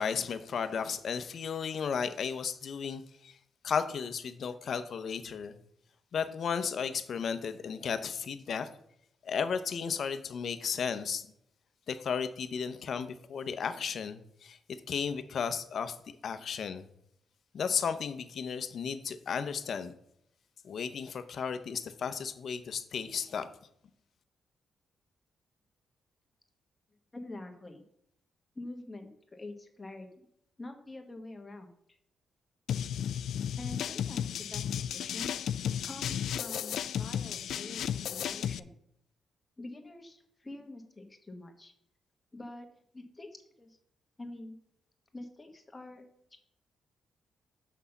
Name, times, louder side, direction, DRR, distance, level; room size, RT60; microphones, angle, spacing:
voice 1, 0.0-3.4 3.6-5.5 6.1-8.7 9.2-11.3 11.9-16.0 16.2-16.8 17.5-19.9 20.6-23.5, left 6 dB, 55° left, 11 dB, 0.8 m, -34 dB
voice 2, 27.1-27.8 28.5-30.3 30.6-32.0 33.5-35.5 35.8-38.7 39.6-41.7 42.3-42.7 42.9-43.8 44.2-44.6 45.1-46.0 46.3-46.4, left 2 dB, 15° left, 4 dB, 1.3 m, -46 dB
sound 1, 32.7-38.6, left 9 dB, 75° left, 0.3 m, -34 dB
6.1 x 5.5 x 7.0 m, 0.73 s
cardioid pair, 130°, 0 cm